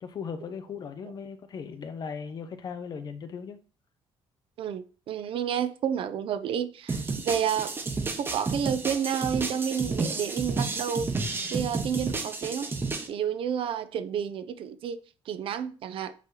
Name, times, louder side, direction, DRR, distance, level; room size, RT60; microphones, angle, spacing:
voice 1, 0.0-3.6, left 6 dB, 40° left, 0.7 m, -38 dB
voice 2, 4.6-7.7 8.2-11.1 11.5-12.7 13.1-15.0 15.3-16.1, right 8 dB, 55° right, 0.6 m, -30 dB
sound 1, 6.9-13.1, right 3 dB, 20° right, 0.8 m, -31 dB
8.1 x 3.0 x 3.8 m
cardioid pair, 150°, 11 cm